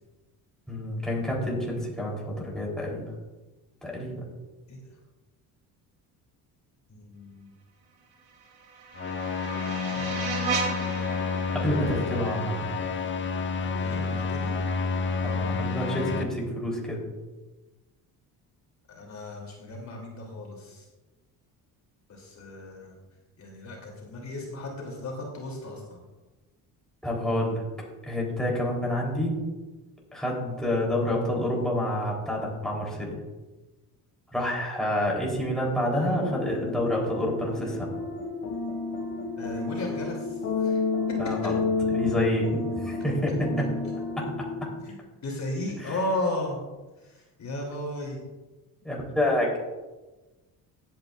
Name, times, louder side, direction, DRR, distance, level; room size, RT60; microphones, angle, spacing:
voice 1, 0.7-3.0 3.8-4.2 11.5-12.7 15.2-17.0 27.0-27.6 28.0-29.4 30.1-33.2 34.3-37.9 41.2-41.6 41.9-42.5 42.7-43.7 44.2-44.3 45.8-45.9 48.8-49.6, left 1 dB, ahead, -3 dB, 4.0 m, -28 dB
voice 2, 6.9-7.5 13.6-14.5 18.9-20.8 22.1-22.9 23.4-26.0 39.4-40.8 43.8-43.9 44.8-44.9 45.2-46.6 47.0-48.2, left 1 dB, 45° left, -1 dB, 3.4 m, -35 dB
sound 1, 8.2-13.2, right 4 dB, 70° right, 2.7 m, -35 dB
sound 2, 8.9-16.2, left 4 dB, 30° left, 1.0 m, -29 dB
sound 3, 36.1-44.9, left 4 dB, 70° left, 2.2 m, -31 dB
16.0 x 9.3 x 2.6 m, 1.2 s
cardioid pair, 95°, 39 cm